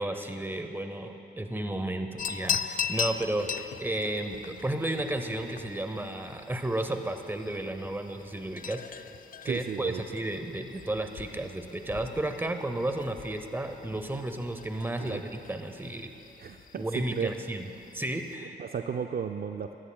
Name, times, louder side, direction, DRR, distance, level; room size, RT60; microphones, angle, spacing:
voice 1, 0.0-9.1 9.4-16.1 16.8-17.7 17.9-18.6, right 1 dB, 10° right, 7 dB, 0.8 m, -33 dB
sound 1, 2.2-18.3, left 7 dB, 45° left, 0.4 m, -40 dB
voice 2, 9.5-10.0 15.0-15.2 16.4-17.3 18.6-19.8, right 7 dB, 50° right, 7 dB, 0.4 m, -34 dB
15.0 x 12.5 x 2.3 m, 2.8 s
cardioid pair, 60°, 20 cm